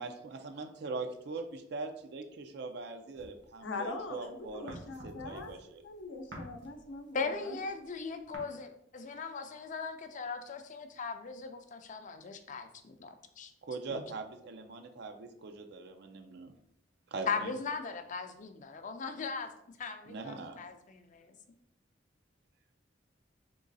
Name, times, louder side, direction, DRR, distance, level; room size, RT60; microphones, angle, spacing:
voice 1, 0.0-5.8 13.6-16.5 17.1-17.5 20.1-20.6, right 3 dB, 65° right, 6 dB, 0.5 m, -42 dB
sound 1, 3.1-4.1 4.4-8.4, right 1 dB, 80° right, 1.3 m, -49 dB
voice 2, 3.6-7.6, left 3 dB, 80° left, 5 dB, 0.7 m, -42 dB
voice 3, 7.1-13.5 13.9-14.0 17.3-19.5 19.8-21.4, left 5 dB, 45° left, 7 dB, 0.5 m, -39 dB
3.8 x 3.0 x 3.9 m, 0.73 s
head